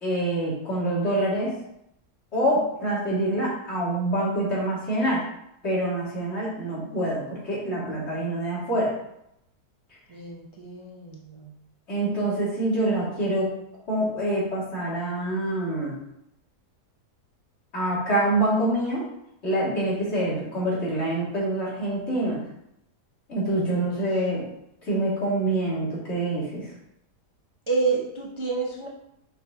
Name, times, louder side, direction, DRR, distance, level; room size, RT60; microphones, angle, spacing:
voice 1, 0.0-1.5 2.3-5.2 5.6-8.9 11.9-13.5 13.9-15.9 17.7-19.1 19.4-22.4 23.3-24.5 24.8-26.6, right 1 dB, 40° left, -7 dB, 2.5 m, -26 dB
voice 2, 10.1-11.5 23.7-24.1 27.7-28.9, right 4 dB, 45° right, -3 dB, 0.3 m, -29 dB
5.5 x 5.0 x 3.8 m, 0.80 s
omnidirectional pair, 1.8 m